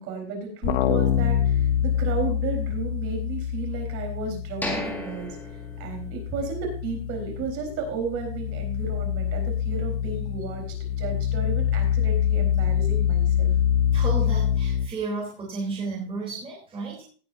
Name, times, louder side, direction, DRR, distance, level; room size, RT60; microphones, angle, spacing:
voice 1, 0.0-5.4 5.8-13.5, right 5 dB, 30° right, 3 dB, 4.1 m, -33 dB
sound 1, 0.6-5.0 5.3-14.9, left 9 dB, 30° left, 0.7 m, -25 dB
sound 2, 4.6-6.5 6.9-7.0 7.5-7.7, left 1 dB, 5° left, 1.8 m, -34 dB
voice 2, 13.9-17.0, right 3 dB, 15° right, -3 dB, 3.2 m, -32 dB
17.5 x 9.4 x 2.6 m, 0.41 s
supercardioid pair, 175°, 43 cm